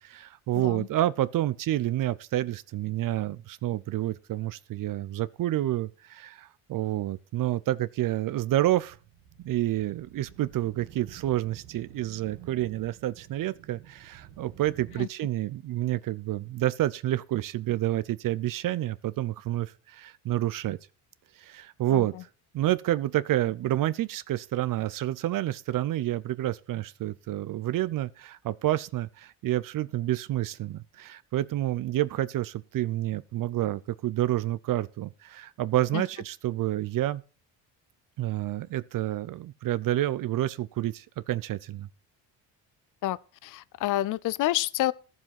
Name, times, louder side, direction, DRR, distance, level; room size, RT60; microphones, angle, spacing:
voice 1, 0.0-9.0 9.4-20.8 21.4-22.1 22.5-37.2 38.2-41.9, right 14 dB, 55° right, 0.6 m, -29 dB
voice 2, 0.5-0.9 15.0-15.1 21.9-22.0 35.9-36.0 43.0-44.9, left 15 dB, 50° left, 0.5 m, -29 dB
sound 1, 8.8-15.0, right 9 dB, 85° right, 1.8 m, -51 dB
12.5 x 7.4 x 5.8 m
cardioid pair, 110°, 40 cm